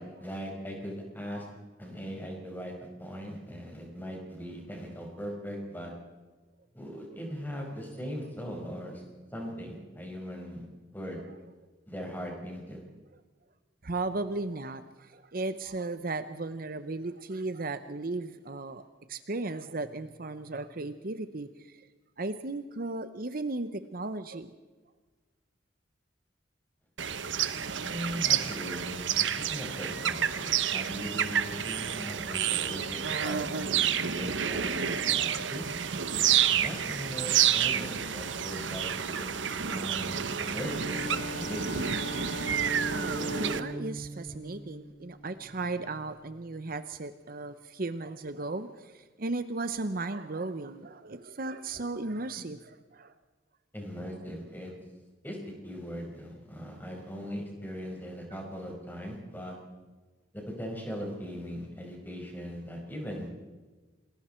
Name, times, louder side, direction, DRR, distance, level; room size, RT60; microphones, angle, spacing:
voice 1, 0.0-1.4 1.8-5.9 6.7-9.0 9.3-10.7 10.9-11.2 11.9-12.8 27.8-35.7 36.5-38.9 39.2-39.3 39.7-41.7 53.7-54.7 55.2-55.4 55.6-59.5 60.3-63.4, equal, 10° left, 0 dB, 5.2 m, -39 dB
voice 2, 13.8-18.8 19.1-21.9 22.2-24.5 42.9-53.1 58.3-58.4, right 2 dB, 50° right, 11 dB, 0.9 m, -36 dB
sound 1, 27.0-43.6, right 8 dB, 75° right, 1.0 m, -29 dB
Bowed string instrument, 40.5-45.5, right 1 dB, 65° left, 7.5 m, -39 dB
28.0 x 20.5 x 4.5 m, 1.3 s
head